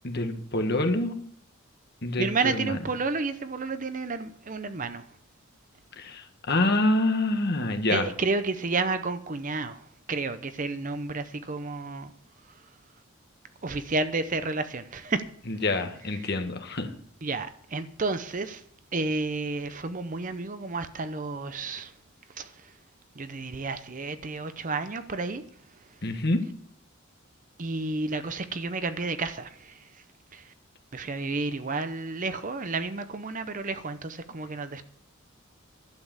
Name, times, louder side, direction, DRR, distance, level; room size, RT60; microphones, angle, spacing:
voice 1, 0.0-1.1 2.0-2.3 2.6-2.8 6.0-8.1 15.5-16.9 26.0-26.4, left 2 dB, 50° left, 1.4 m, -26 dB
voice 2, 2.2-5.0 7.9-12.1 13.6-15.3 16.2-16.3 17.2-18.6 18.9-21.9 22.4-22.7 23.1-25.4 27.6-30.0 30.3-30.5 30.9-34.8, right 3 dB, 35° right, 0.7 m, -31 dB
11.5 x 7.7 x 7.4 m
head